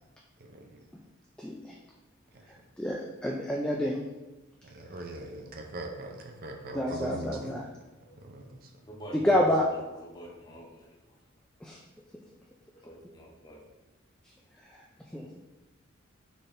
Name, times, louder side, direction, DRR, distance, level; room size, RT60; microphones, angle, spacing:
voice 1, 2.8-4.0 6.7-7.7 9.1-9.6 11.6-11.8 15.1-15.4, left 1 dB, 5° left, -2 dB, 0.3 m, -28 dB
voice 2, 4.7-7.6 8.2-8.6, right 2 dB, 45° right, 2 dB, 0.5 m, -40 dB
voice 3, 8.9-9.6 10.0-10.9 12.7-13.6, equal, 20° left, -2 dB, 0.8 m, -46 dB
4.1 x 3.3 x 3.6 m, 1.0 s
head